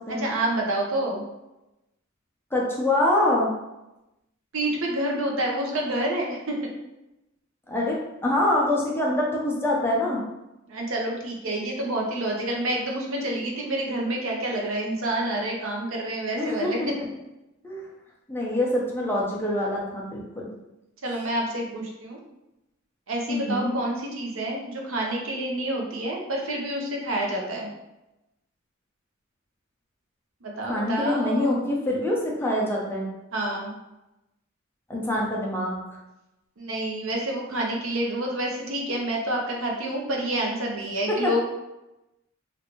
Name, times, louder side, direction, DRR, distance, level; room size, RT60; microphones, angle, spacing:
voice 1, 0.2-1.2 4.5-6.6 10.7-16.8 21.0-22.2 23.1-27.7 30.4-31.7 33.3-33.7 36.6-41.4, right 1 dB, 80° right, -1 dB, 0.8 m, -28 dB
voice 2, 2.5-3.5 7.7-10.2 16.4-16.7 17.0-17.1 17.6-17.8 18.3-20.2 23.3-23.7 30.6-33.1 34.9-35.8 41.2-41.4, left 1 dB, 10° left, -3 dB, 0.6 m, -25 dB
3.2 x 2.6 x 2.9 m, 0.94 s
head